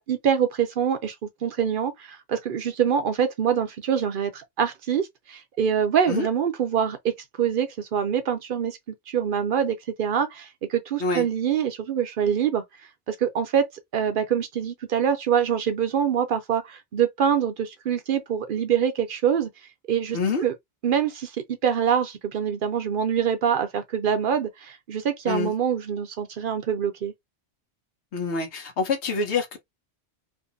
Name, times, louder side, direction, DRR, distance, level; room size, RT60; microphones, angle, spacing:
voice 1, 0.0-8.8 9.1-12.6 13.1-19.5 19.9-20.5 20.8-21.3 21.6-27.1, right 8 dB, 60° right, 0.7 m, -25 dB
voice 2, 20.1-20.5 25.3-25.5 28.1-29.6, left 4 dB, 80° left, 1.1 m, -26 dB
2.6 x 2.5 x 2.5 m
omnidirectional pair, 1.1 m